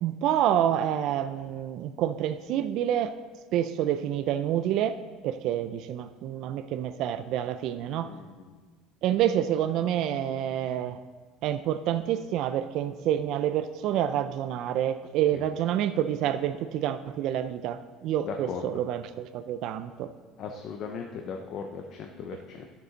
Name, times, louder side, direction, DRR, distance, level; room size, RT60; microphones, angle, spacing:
voice 1, 0.0-3.2 3.5-5.0 5.2-8.1 9.0-11.0 11.4-20.1, right 11 dB, 50° right, 11 dB, 0.3 m, -28 dB
voice 2, 8.0-8.4 15.3-15.5 18.2-18.6 20.4-22.7, left 6 dB, 40° left, 3 dB, 0.6 m, -38 dB
11.0 x 6.8 x 3.9 m, 1.4 s
cardioid pair, 170°, 0 cm